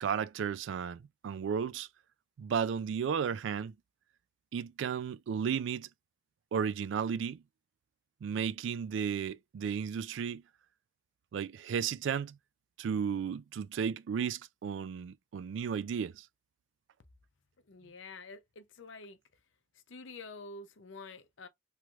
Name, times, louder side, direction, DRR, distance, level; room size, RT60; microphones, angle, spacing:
voice 1, 0.0-1.9 2.4-3.7 4.5-5.9 6.5-7.4 8.2-10.4 11.3-12.4 12.8-16.3, right 7 dB, 70° right, 0.3 m, -34 dB
voice 2, 17.7-19.2 19.9-21.5, left 3 dB, 80° left, 0.6 m, -48 dB
3.2 x 3.0 x 2.3 m
head